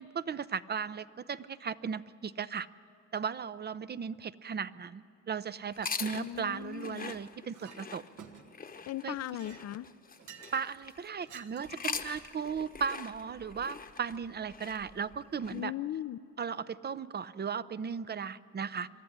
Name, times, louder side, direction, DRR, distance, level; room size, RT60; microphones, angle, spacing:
voice 1, 0.0-2.7 3.1-8.0 9.0-9.2 10.5-15.7 16.4-18.9, right 6 dB, 35° right, 15 dB, 0.6 m, -36 dB
sound 1, 5.7-11.1 11.6-15.6, left 5 dB, 30° left, 1.0 m, -43 dB
voice 2, 6.1-7.1 8.9-9.9 15.5-16.2, left 13 dB, 60° left, 18 dB, 0.5 m, -38 dB
Chink clink, 7.5-7.8 8.2-8.7 9.2-10.7 11.2-11.9, right 7 dB, 80° right, 1.5 m, -52 dB
23.0 x 13.0 x 10.0 m, 2.5 s
cardioid pair, 90°, 30 cm